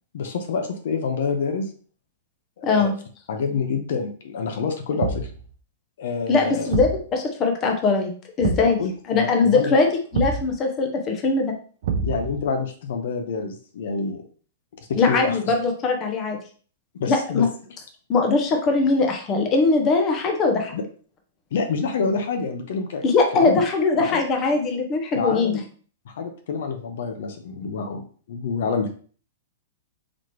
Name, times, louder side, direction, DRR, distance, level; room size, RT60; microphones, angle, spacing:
voice 1, 0.1-1.7 2.6-2.9 3.3-5.3 6.0-6.7 8.8-9.8 12.0-14.2 14.8-15.5 17.0-17.5 20.7-20.8 21.5-23.0 23.3-23.6 24.0-24.2 25.1-25.6 26.1-28.9, left 5 dB, 70° left, 5 dB, 0.7 m, -27 dB
voice 2, 2.6-2.9 6.3-8.1 8.4-8.8 9.1-9.9 10.1-11.5 15.0-16.4 17.1-17.5 18.1-20.7 23.0-25.6, left 4 dB, 25° left, 3 dB, 0.7 m, -21 dB
Thump thud, 5.0-5.4 6.7-7.0 8.4-8.8 10.1-10.5 11.8-12.4, right 5 dB, 65° right, 0.6 m, -26 dB
4.2 x 3.0 x 3.1 m, 0.43 s
hypercardioid pair, 150°, 0 cm